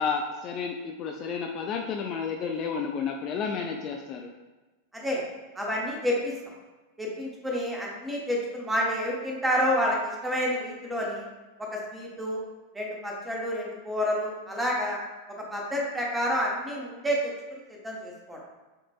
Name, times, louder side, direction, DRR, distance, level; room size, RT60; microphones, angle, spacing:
voice 1, 0.0-4.3, left 6 dB, 35° left, 2 dB, 0.3 m, -31 dB
voice 2, 4.9-5.2 5.5-6.3 7.0-11.2 11.6-12.4 12.7-15.0 15.3-18.4, equal, 10° right, -2 dB, 1.0 m, -29 dB
6.4 x 2.5 x 2.3 m, 1.2 s
figure-of-eight pair, 90°, 0 cm